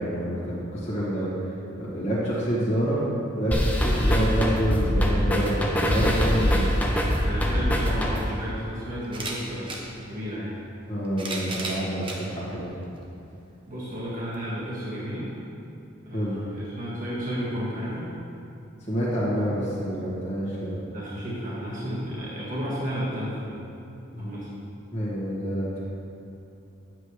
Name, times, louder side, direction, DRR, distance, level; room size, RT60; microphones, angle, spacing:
voice 1, 0.0-3.0 3.3-6.7 10.9-12.7 16.1-16.5 18.9-20.8 24.1-24.3 24.9-25.8, equal, 30° left, -9 dB, 1.7 m, -27 dB
sound 1, 3.5-8.5, equal, 10° left, 0.7 m, -24 dB
voice 2, 7.2-10.6 13.7-15.3 16.0-18.1 20.9-23.6 24.2-24.5, equal, 40° right, -8 dB, 1.8 m, -32 dB
sound 2, 9.0-9.8 10.8-12.2 13.0-13.1 14.3-14.4, right 2 dB, 25° right, 0.9 m, -34 dB
9.8 x 7.7 x 3.3 m, 2.7 s
head